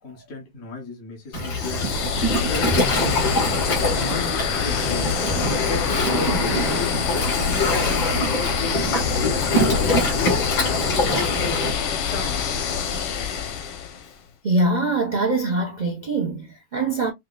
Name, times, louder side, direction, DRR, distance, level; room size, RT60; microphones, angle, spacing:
voice 1, 0.0-3.2 3.6-8.8 9.1-12.4, left 3 dB, 45° left, 1.6 m, -34 dB
Waves surf, 1.3-11.7, left 1 dB, 70° left, 2.9 m, -24 dB
sound 1, 1.4-14.1, left 7 dB, 90° left, 1.7 m, -26 dB
voice 2, 14.4-17.1, right 2 dB, 60° right, 0.4 m, -23 dB
5.6 x 2.2 x 2.2 m
omnidirectional pair, 2.2 m